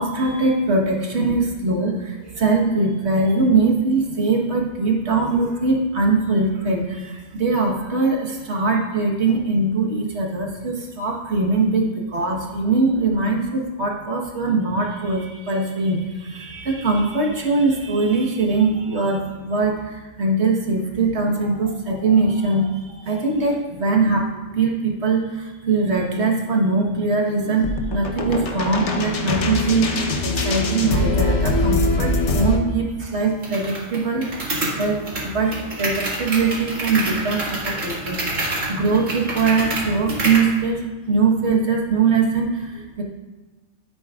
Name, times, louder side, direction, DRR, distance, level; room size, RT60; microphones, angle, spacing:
voice 1, 0.0-34.3 34.7-38.2 38.7-43.0, right 3 dB, 60° right, -1 dB, 1.7 m, -21 dB
sound 1, 27.6-32.6, left 2 dB, 70° left, 1.3 m, -22 dB
sound 2, 33.4-40.5, right 2 dB, 85° right, 2.6 m, -28 dB
13.5 x 8.5 x 2.5 m, 1.2 s
omnidirectional pair, 1.3 m